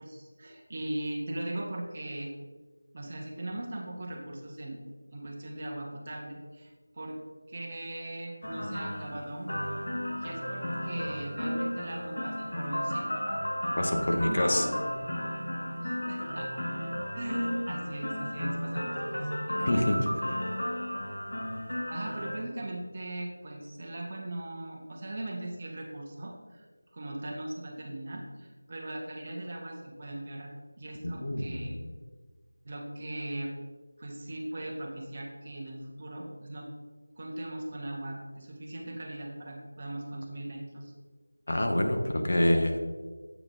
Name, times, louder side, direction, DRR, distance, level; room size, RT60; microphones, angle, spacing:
voice 1, 0.0-2.3 2.9-4.8 5.1-7.2 7.5-9.6 10.2-13.2 14.0-14.8 15.8-16.6 17.1-20.1 21.9-26.6 26.9-30.5 30.8-31.8 32.6-33.5 34.0-36.7 37.2-40.9, right 1 dB, 30° right, -1 dB, 1.0 m, -39 dB
sound 1, 8.4-22.3, equal, 65° left, 1.4 m, -34 dB
voice 2, 13.8-14.6 19.7-20.0 31.0-31.7 41.5-42.8, left 1 dB, 45° left, 4 dB, 0.8 m, -26 dB
8.0 x 4.4 x 3.8 m, 1.4 s
figure-of-eight pair, 175°, 0 cm